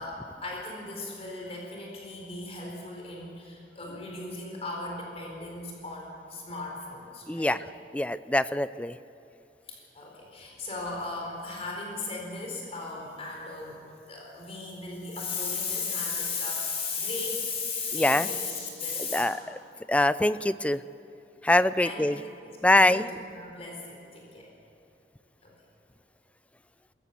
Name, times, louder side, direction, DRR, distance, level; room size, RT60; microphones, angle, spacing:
voice 1, 0.0-7.6 9.6-19.5 21.8-22.0 22.4-24.5 25.4-25.5, left 3 dB, 35° left, -1 dB, 4.2 m, -36 dB
voice 2, 7.3-7.6 7.9-9.0 17.9-18.3 19.1-19.4 19.9-20.8 21.4-22.2 22.6-23.1, left 1 dB, 10° left, 15 dB, 0.4 m, -23 dB
22.5 x 14.5 x 8.3 m, 2.7 s
head